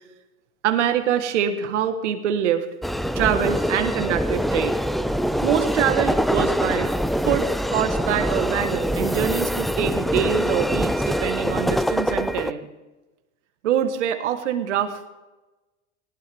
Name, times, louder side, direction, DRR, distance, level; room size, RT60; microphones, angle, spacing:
voice 1, 0.6-2.7 3.1-4.8 5.2-6.9 7.3-12.7 13.6-15.1, right 9 dB, 90° right, 9 dB, 1.6 m, -24 dB
sound 1, 2.8-12.5, equal, ahead, 0.6 m, -24 dB
19.0 x 18.5 x 3.5 m, 1.1 s
hypercardioid pair, 85°, 35 cm